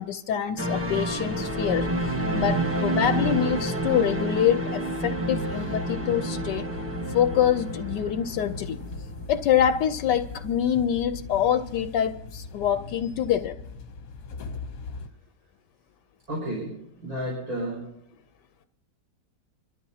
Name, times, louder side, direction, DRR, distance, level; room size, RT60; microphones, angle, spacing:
voice 1, 0.0-1.9 2.3-6.7 7.1-8.8 9.3-13.5, left 9 dB, 80° left, 9 dB, 1.3 m, -25 dB
sound 1, 0.6-9.7 10.0-10.1, right 1 dB, 10° right, 1.3 m, -29 dB
sound 2, 5.0-15.1, left 3 dB, 60° left, 1.4 m, -39 dB
voice 2, 16.3-17.8, right 1 dB, 55° right, -3 dB, 5.5 m, -32 dB
26.0 x 13.5 x 2.8 m, 0.80 s
omnidirectional pair, 1.8 m